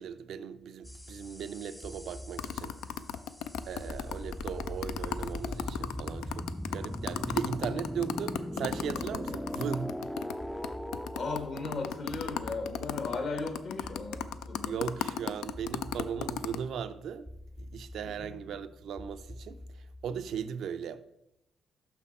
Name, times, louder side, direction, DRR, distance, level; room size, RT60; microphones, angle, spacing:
voice 1, 0.0-2.8 3.7-10.0 14.6-17.3 17.6-21.0, right 7 dB, 70° right, 0.4 m, -37 dB
sound 1, 0.8-20.5, left 1 dB, 5° left, 0.3 m, -42 dB
sound 2, 2.4-10.3 10.6-10.7 10.9-16.6, left 10 dB, 90° left, 0.3 m, -35 dB
voice 2, 11.1-14.8 18.0-18.4, left 3 dB, 60° left, 1.5 m, -37 dB
5.8 x 5.7 x 4.2 m
cardioid pair, 90°, 0 cm